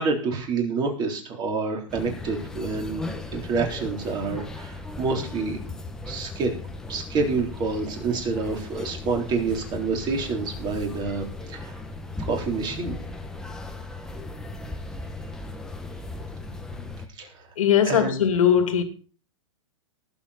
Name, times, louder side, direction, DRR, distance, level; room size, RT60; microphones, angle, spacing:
voice 1, 0.0-5.6 6.1-6.5 6.9-11.7 12.2-13.0 17.2-17.3 17.9-18.3, right 4 dB, 25° right, 3.9 m, -28 dB
sound 1, 1.9-17.1, left 2 dB, 5° left, 1.3 m, -37 dB
voice 2, 17.6-18.8, left 8 dB, 75° left, 2.8 m, -20 dB
19.0 x 7.7 x 4.3 m
hypercardioid pair, 145°, 17 cm